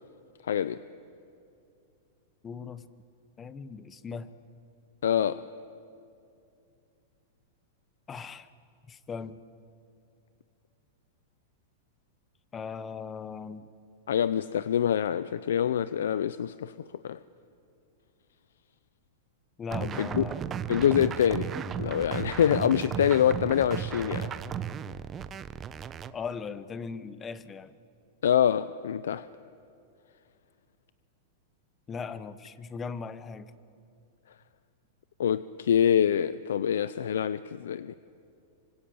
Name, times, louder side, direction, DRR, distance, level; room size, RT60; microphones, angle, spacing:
voice 1, 0.5-0.8 5.0-5.4 14.1-16.7 17.0-17.2 20.0-20.3 20.7-21.5 21.8-24.3 28.2-29.3 35.2-37.9, left 9 dB, 85° left, 0.6 m, -25 dB
voice 2, 2.4-2.8 3.4-4.3 8.1-8.5 8.9-9.4 12.5-13.7 19.6-20.5 26.1-27.7 31.9-33.5, left 5 dB, 20° left, 1.0 m, -38 dB
sound 1, 19.7-26.1, right 8 dB, 25° right, 0.9 m, -35 dB
26.5 x 25.0 x 8.8 m
supercardioid pair, 145°, 0 cm